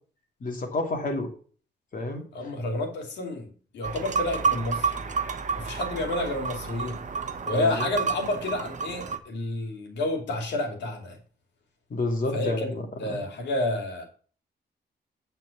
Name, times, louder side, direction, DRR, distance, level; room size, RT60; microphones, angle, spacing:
voice 1, 0.4-1.3 1.9-2.2 7.5-7.9 11.9-12.8 13.1-13.2, left 2 dB, 50° left, 2 dB, 2.5 m, -29 dB
voice 2, 2.3-5.0 5.5-7.0 7.5-11.2 12.3-12.7 13.0-14.0, left 2 dB, 85° left, 3 dB, 2.6 m, -30 dB
sound 1, 3.8-9.2, right 5 dB, 45° right, 1.0 m, -30 dB
8.3 x 4.6 x 7.0 m, 0.43 s
cardioid pair, 85°, 18 cm